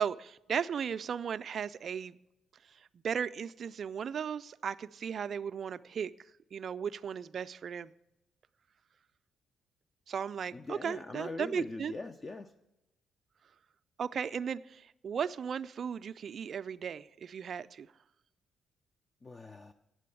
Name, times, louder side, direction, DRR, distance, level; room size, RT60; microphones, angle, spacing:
voice 1, 0.0-2.2 2.7-6.1 6.5-7.9 10.1-11.9 14.0-17.9, right 7 dB, 55° right, 13 dB, 0.3 m, -36 dB
voice 2, 10.5-12.5 19.2-19.7, left 3 dB, 30° left, 8 dB, 0.4 m, -42 dB
8.5 x 7.5 x 8.4 m, 0.91 s
cardioid pair, 90°, 0 cm